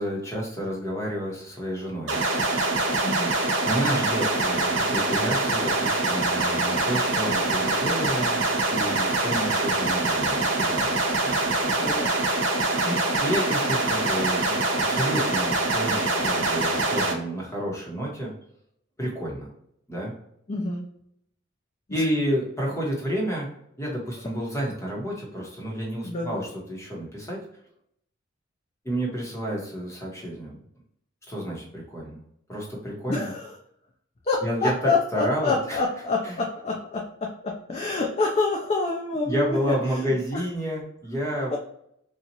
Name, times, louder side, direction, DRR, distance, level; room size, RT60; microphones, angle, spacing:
voice 1, 0.0-2.2 3.6-12.0 13.2-14.6 14.9-18.3 19.0-19.5 19.9-20.1 21.9-23.5 23.8-27.4 28.8-30.6 31.3-32.2 32.5-33.3 34.4-35.8 36.2-36.4 39.2-41.5, equal, 15° left, -3 dB, 1.1 m, -30 dB
sound 1, 2.1-17.1, right 2 dB, 70° right, 0.8 m, -24 dB
voice 2, 3.0-3.3 11.7-12.1 12.8-13.1 20.5-20.8 21.9-22.0 26.0-26.4 33.1-33.6 34.2-40.0 40.3-40.4 41.5-41.6, left 3 dB, 35° left, 0 dB, 0.4 m, -27 dB
4.0 x 2.4 x 2.9 m, 0.73 s
head